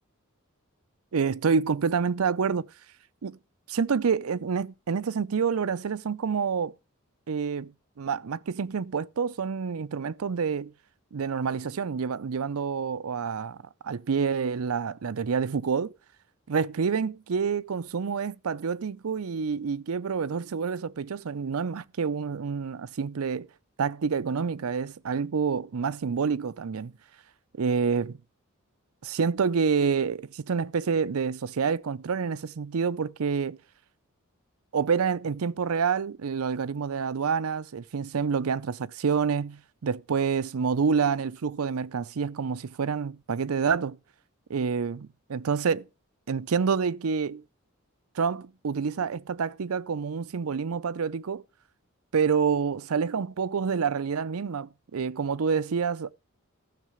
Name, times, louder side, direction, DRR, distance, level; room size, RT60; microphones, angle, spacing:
voice 1, 1.1-2.7 3.2-3.4 3.7-6.7 7.3-7.7 8.0-10.7 11.1-13.6 13.8-15.9 16.5-23.5 23.8-26.9 27.6-28.2 29.0-33.6 34.7-44.0 44.5-45.9 46.3-47.4 48.2-51.4 52.1-56.1, right 6 dB, 85° right, 0.5 m, -28 dB
14.0 x 6.6 x 5.0 m
head